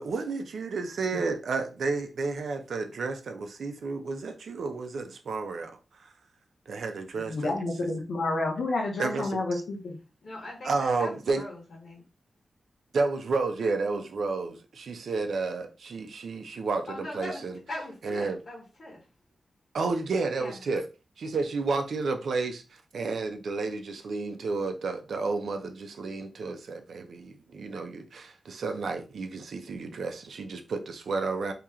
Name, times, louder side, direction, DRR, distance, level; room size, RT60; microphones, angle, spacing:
voice 1, 0.0-5.7 6.7-7.5 9.0-9.6 10.6-11.4 12.9-17.5 18.0-18.4 19.7-20.9 21.2-31.5, right 3 dB, 75° right, 0.6 m, -31 dB
voice 2, 7.2-10.0, left 2 dB, 90° left, 0.9 m, -30 dB
voice 3, 10.2-12.0 16.9-17.4 17.7-19.0 20.4-20.6, left 1 dB, 50° left, 1.4 m, -40 dB
2.9 x 2.9 x 3.6 m
wide cardioid pair, 135°, 0 cm